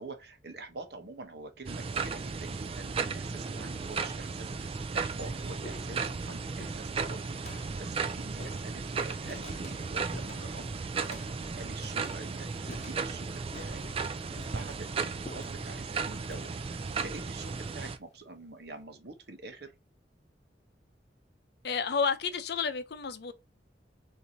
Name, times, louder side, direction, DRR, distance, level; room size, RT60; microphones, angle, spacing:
voice 1, 0.0-19.7, right 3 dB, 65° right, 1.0 m, -46 dB
sound 1, 1.7-18.0, right 4 dB, 30° right, 0.4 m, -35 dB
sound 2, 1.8-2.3 3.2-3.3 4.1-4.2 4.6-18.2, left 2 dB, 40° left, 0.8 m, -51 dB
voice 2, 21.6-23.3, left 5 dB, 65° left, 0.6 m, -30 dB
4.6 x 2.7 x 4.0 m
head